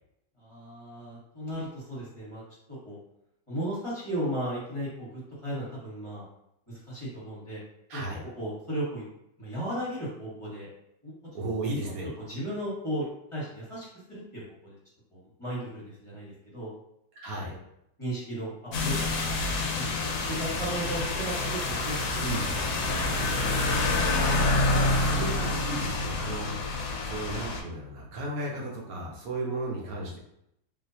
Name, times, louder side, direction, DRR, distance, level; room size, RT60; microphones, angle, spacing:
voice 1, 0.4-2.4 2.7-3.0 3.5-6.2 6.7-7.6 7.9-8.0 8.4-9.1 9.4-10.7 11.0-11.1 12.3-14.8 15.1-16.7 17.5-17.6 18.0-19.2 19.7-22.2 22.5-22.6 23.2-24.1, right 1 dB, 20° left, -8 dB, 1.0 m, -36 dB
voice 2, 7.9-8.2 11.3-12.1 17.2-17.6 22.2-22.5 24.6-26.5 27.0-30.2, right 2 dB, 60° right, -2 dB, 1.1 m, -34 dB
sound 1, 18.7-27.6, left 2 dB, 70° left, 1.0 m, -27 dB
3.7 x 2.7 x 2.7 m, 0.78 s
omnidirectional pair, 1.9 m